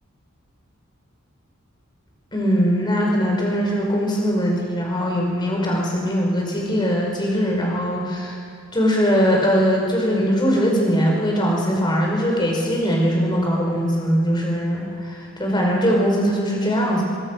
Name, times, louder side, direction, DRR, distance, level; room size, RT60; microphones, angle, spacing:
voice 1, 2.3-8.3 8.7-17.1, equal, 20° left, -1 dB, 5.4 m, -21 dB
24.0 x 21.5 x 6.4 m, 2.3 s
head